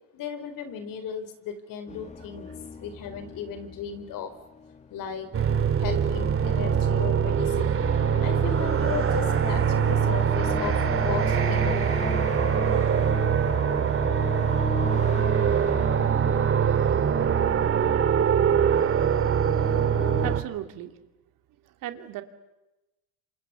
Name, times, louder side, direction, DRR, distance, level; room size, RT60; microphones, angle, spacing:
voice 1, 0.1-4.3 4.9-5.3 5.8-7.8 8.2-11.9, left 7 dB, 60° left, 10 dB, 4.6 m, -36 dB
sound 1, 1.9-20.4, left 5 dB, 20° left, 1.4 m, -38 dB
sound 2, 5.3-20.4, right 8 dB, 35° right, 2.2 m, -23 dB
voice 2, 18.8-19.2 20.2-21.0 21.6-22.2, right 12 dB, 60° right, 7 dB, 2.8 m, -38 dB
27.5 x 27.0 x 7.1 m, 0.99 s
supercardioid pair, 110°, 38 cm